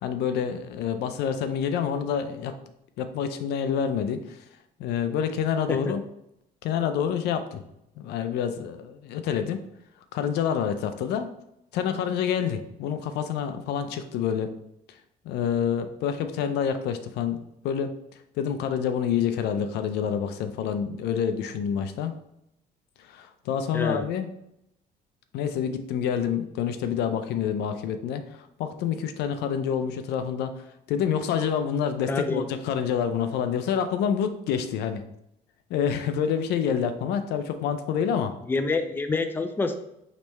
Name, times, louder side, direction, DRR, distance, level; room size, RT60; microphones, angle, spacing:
voice 1, 0.0-2.5 3.0-4.4 4.8-6.0 6.6-7.6 8.0-9.6 10.1-11.3 11.7-14.5 14.9-15.0 15.2-17.4 17.6-17.9 18.3-22.1 23.0-24.3 25.3-35.0 35.7-38.3, left 8 dB, 80° left, 9 dB, 0.5 m, -27 dB
voice 2, 32.1-32.5 38.5-39.7, left 3 dB, 10° left, 7 dB, 0.4 m, -26 dB
5.1 x 3.2 x 3.1 m, 0.81 s
cardioid pair, 110°, 17 cm